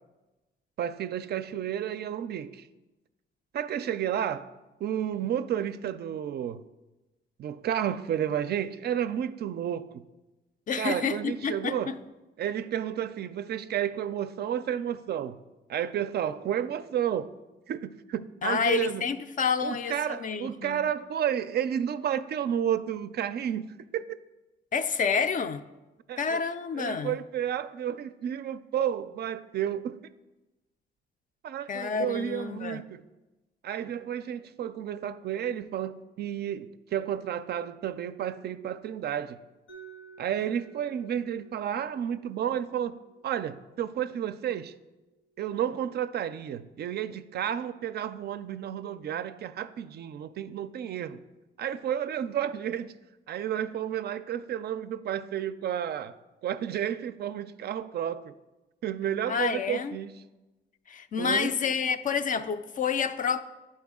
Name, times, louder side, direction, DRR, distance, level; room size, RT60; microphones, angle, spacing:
voice 1, 0.8-2.6 3.5-4.5 4.8-6.6 7.4-10.0 10.8-11.9 12.4-15.4 15.7-17.3 17.7-19.0 19.6-23.7 23.9-24.2 26.1-26.4 26.8-30.0 31.4-33.0 33.6-39.4 40.2-43.0 43.2-44.7 45.4-51.2 51.6-52.9 53.3-56.1 56.4-58.3 58.8-60.1 61.2-61.5, right 9 dB, 55° right, 0.4 m, -31 dB
voice 2, 10.7-12.0 18.4-20.8 24.7-25.6 26.2-27.2 31.7-32.8 59.3-60.0 60.9-63.4, left 6 dB, 40° left, 0.4 m, -29 dB
Mallet percussion, 39.7-45.5, right 5 dB, 90° left, 2.1 m, -54 dB
10.5 x 4.4 x 3.6 m
cardioid pair, 90°, 20 cm